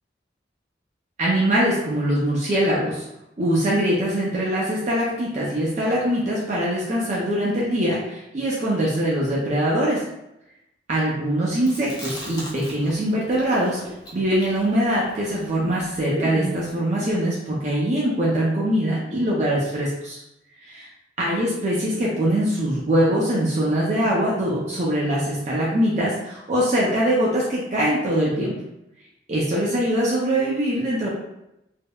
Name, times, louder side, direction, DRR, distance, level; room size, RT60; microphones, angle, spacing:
voice 1, 1.2-3.0 3.4-10.0 10.9-13.8 14.1-20.2 20.6-20.9 21.2-28.6 29.3-31.1, right 1 dB, 40° right, -5 dB, 0.4 m, -22 dB
Chewing mastication, 11.6-13.0 13.3-16.7, right 1 dB, 25° left, 0.5 m, -35 dB
3.3 x 2.0 x 2.2 m, 0.86 s
head